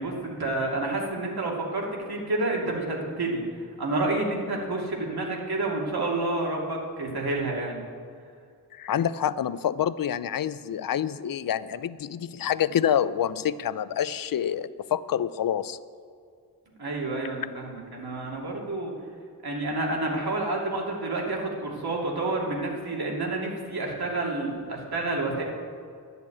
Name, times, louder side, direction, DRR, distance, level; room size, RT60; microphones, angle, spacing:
voice 1, 0.0-3.4 3.8-7.8 16.8-18.9 19.4-25.4, right 2 dB, 65° right, -1 dB, 2.6 m, -29 dB
voice 2, 8.7-15.8, left 9 dB, 55° left, 16 dB, 0.5 m, -27 dB
10.5 x 6.8 x 8.5 m, 2.3 s
cardioid pair, 50°, 40 cm